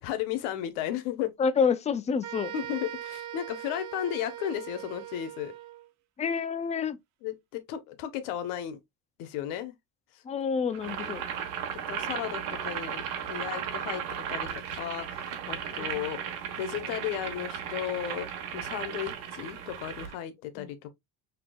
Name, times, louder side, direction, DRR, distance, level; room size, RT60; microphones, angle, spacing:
voice 1, 0.0-1.3 2.5-5.5 7.2-8.8 9.2-9.7 11.9-14.0 14.3-16.2 16.6-18.3 18.5-20.9, left 10 dB, 85° left, 1.0 m, -34 dB
voice 2, 1.4-2.5 6.2-7.0 10.2-11.2 15.7-16.1 20.6-20.7, left 6 dB, 20° left, 0.4 m, -28 dB
sound 1, 2.2-5.9, right 12 dB, 55° right, 0.6 m, -41 dB
Boiling, 10.7-20.2, right 8 dB, 80° right, 1.2 m, -35 dB
5.9 x 2.8 x 2.3 m
cardioid pair, 125°, 37 cm